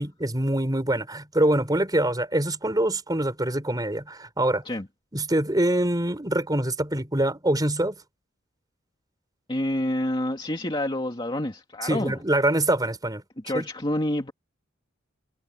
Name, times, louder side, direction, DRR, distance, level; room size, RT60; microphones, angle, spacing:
voice 1, 0.0-4.6 5.1-7.9 11.8-13.2 13.5-13.6, right 1 dB, 20° right, 4.5 m, -24 dB
voice 2, 9.5-12.2 13.4-14.3, left 1 dB, 25° left, 2.3 m, -28 dB
head